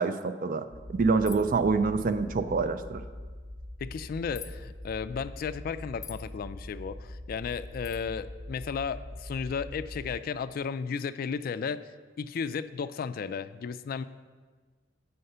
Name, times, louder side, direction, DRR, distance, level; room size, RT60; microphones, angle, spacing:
voice 1, 0.0-3.0, right 4 dB, 50° right, 10 dB, 0.4 m, -26 dB
sound 1, 0.7-10.2, left 1 dB, 75° right, 1.4 m, -43 dB
sound 2, 1.2-1.6 4.3-4.5 6.0-6.3 7.8-8.0, left 8 dB, 20° left, 0.7 m, -44 dB
voice 2, 3.8-11.8 12.2-14.0, left 6 dB, 55° left, 13 dB, 0.3 m, -34 dB
7.7 x 5.7 x 5.5 m, 1.5 s
head